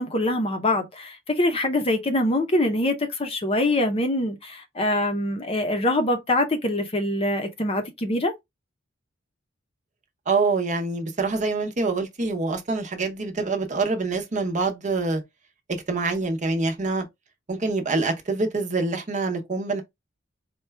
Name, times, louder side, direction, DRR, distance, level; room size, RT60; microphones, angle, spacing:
voice 1, 0.0-8.3, left 1 dB, 30° left, 0.7 m, -24 dB
voice 2, 10.3-15.2 15.9-17.0 17.5-19.8, right 3 dB, 40° right, 0.8 m, -25 dB
4.3 x 2.3 x 3.2 m
head